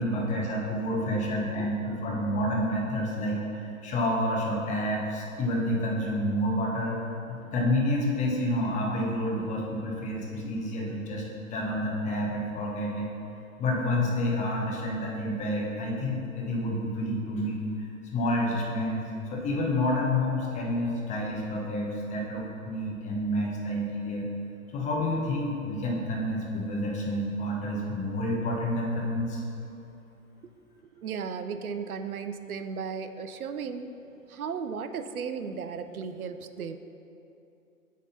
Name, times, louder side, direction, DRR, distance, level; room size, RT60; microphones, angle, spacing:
voice 1, 0.0-7.0 7.3-11.2 11.5-13.1 13.6-17.6 18.1-19.0 19.3-24.3 24.7-29.4, left 1 dB, 15° left, -2 dB, 1.0 m, -29 dB
voice 2, 1.1-2.1 30.8-34.0 34.3-36.8, right 6 dB, 85° right, 10 dB, 0.6 m, -36 dB
8.5 x 3.7 x 5.5 m, 2.9 s
hypercardioid pair, 125°, 42 cm